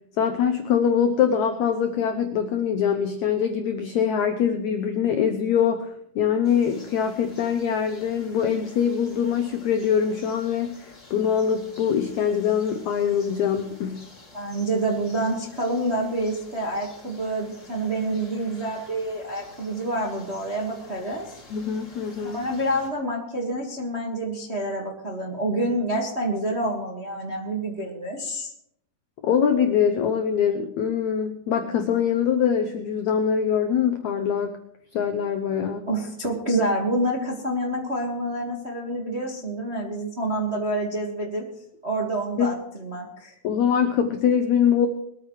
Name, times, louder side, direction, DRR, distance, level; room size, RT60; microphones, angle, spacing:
voice 1, 0.2-14.1 21.5-22.4 29.2-34.6 34.9-35.8 42.4-42.5 43.4-44.9, left 8 dB, 90° left, 6 dB, 1.6 m, -23 dB
sound 1, 6.4-22.9, left 2 dB, 20° left, 2.7 m, -49 dB
voice 2, 14.3-21.4 22.2-28.5 35.9-41.4 41.8-43.4, right 1 dB, 40° right, -2 dB, 0.9 m, -27 dB
22.0 x 13.5 x 3.3 m, 0.75 s
omnidirectional pair, 4.4 m